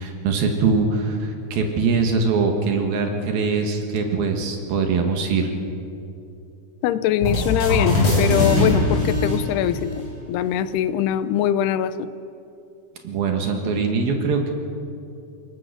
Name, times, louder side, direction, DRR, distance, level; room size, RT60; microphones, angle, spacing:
voice 1, 0.0-5.5 13.0-14.5, right 4 dB, 70° right, 4 dB, 3.3 m, -22 dB
voice 2, 6.8-9.9 10.3-12.1, left 10 dB, 85° left, 13 dB, 2.7 m, -22 dB
sound 1, 7.2-10.1, left 1 dB, 30° left, 7.2 m, -21 dB
28.0 x 17.5 x 6.7 m, 2.7 s
omnidirectional pair, 4.6 m